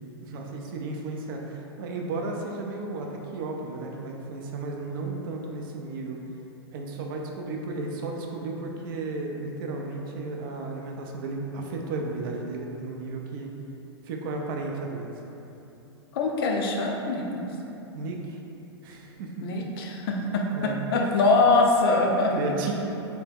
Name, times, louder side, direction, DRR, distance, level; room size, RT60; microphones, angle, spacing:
voice 1, 0.2-6.2 6.7-13.5 14.1-15.1 17.9-18.4 18.8-19.4 20.5-21.2 22.3-22.7, right 3 dB, 55° right, 1 dB, 0.4 m, -34 dB
voice 2, 16.1-17.5 19.4-22.3, left 3 dB, 60° left, 1 dB, 0.4 m, -23 dB
2.7 x 2.2 x 3.3 m, 2.9 s
hypercardioid pair, 105°, 14 cm